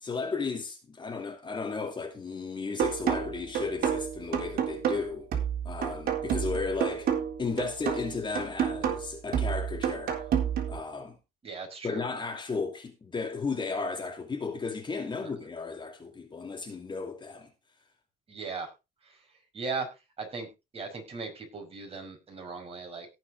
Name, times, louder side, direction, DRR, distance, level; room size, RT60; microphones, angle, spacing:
voice 1, 0.0-5.3 5.6-7.1 7.4-10.2 10.7-11.2 11.8-17.5, left 4 dB, 25° left, 2.3 m, -34 dB
sound 1, 2.8-10.8, right 8 dB, 60° right, 3.7 m, -30 dB
voice 2, 11.4-12.0 15.2-15.3 18.3-18.7 19.5-19.9 20.2-20.5 20.7-23.1, right 4 dB, 35° right, 5.5 m, -37 dB
18.0 x 6.0 x 3.9 m
cardioid pair, 110°, 17 cm